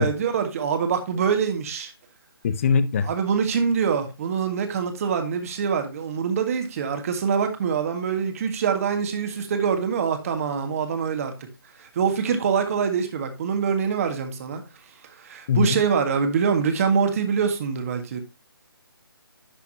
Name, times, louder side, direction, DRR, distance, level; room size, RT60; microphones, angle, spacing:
voice 1, 0.0-1.9 3.0-11.3 11.8-14.6 15.2-18.2, right 6 dB, 35° right, 1.7 m, -24 dB
voice 2, 2.4-3.1 15.5-15.8, left 5 dB, 35° left, 0.7 m, -21 dB
11.5 x 5.7 x 2.8 m
figure-of-eight pair, 145°, 13 cm